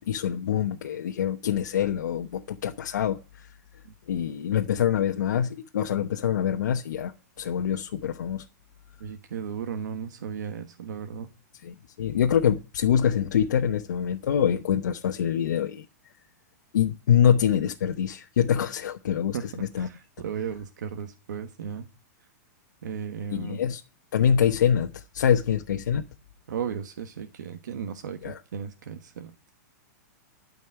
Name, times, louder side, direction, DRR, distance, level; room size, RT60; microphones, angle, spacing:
voice 1, 0.0-3.5 4.1-8.4 11.6-15.8 16.7-19.9 23.3-23.8 24.1-26.0 28.2-28.4, left 8 dB, 90° left, 1.1 m, -25 dB
voice 2, 9.0-11.3 19.3-21.9 22.8-23.6 26.5-29.3, right 7 dB, 85° right, 1.4 m, -35 dB
13.0 x 5.4 x 9.0 m
supercardioid pair, 170°, 10 cm